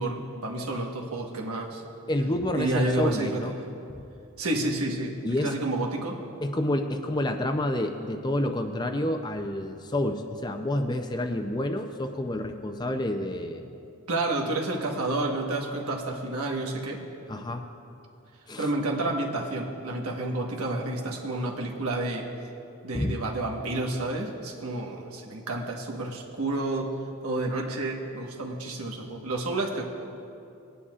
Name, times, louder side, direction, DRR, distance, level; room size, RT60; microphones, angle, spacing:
voice 1, 0.0-1.8 2.5-3.4 4.4-6.2 14.1-17.0 18.6-22.3 22.8-26.9 27.2-29.8, right 2 dB, 80° right, 0 dB, 1.3 m, -30 dB
voice 2, 2.1-3.5 3.9-4.0 5.2-5.5 6.4-13.6 17.3-17.6 18.5-18.7 22.9-23.2, left 1 dB, 20° left, 5 dB, 0.5 m, -29 dB
19.0 x 9.8 x 2.4 m, 2.6 s
head